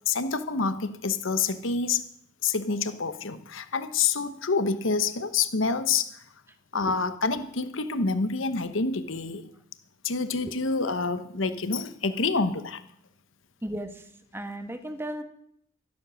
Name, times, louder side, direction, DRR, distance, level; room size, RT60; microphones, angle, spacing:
voice 1, 0.1-2.0 2.4-6.2 6.7-9.5 10.0-12.8, left 4 dB, 70° left, 11 dB, 1.0 m, -27 dB
voice 2, 13.6-14.1 14.3-15.2, right 1 dB, 10° right, 7 dB, 1.3 m, -35 dB
13.0 x 12.5 x 6.3 m, 0.68 s
head